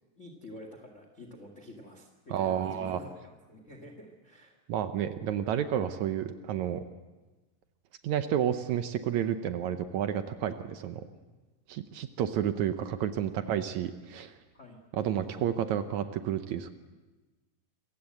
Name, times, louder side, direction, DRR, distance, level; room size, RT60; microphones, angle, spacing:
voice 1, 0.2-4.6 11.1-11.4 13.3-13.5 14.5-14.8, left 1 dB, 30° left, 4 dB, 1.6 m, -48 dB
voice 2, 2.3-3.0 4.7-6.8 8.0-11.1 11.7-14.3 14.9-16.7, right 9 dB, 70° right, 9 dB, 1.9 m, -30 dB
26.0 x 15.5 x 7.7 m, 1.2 s
omnidirectional pair, 3.9 m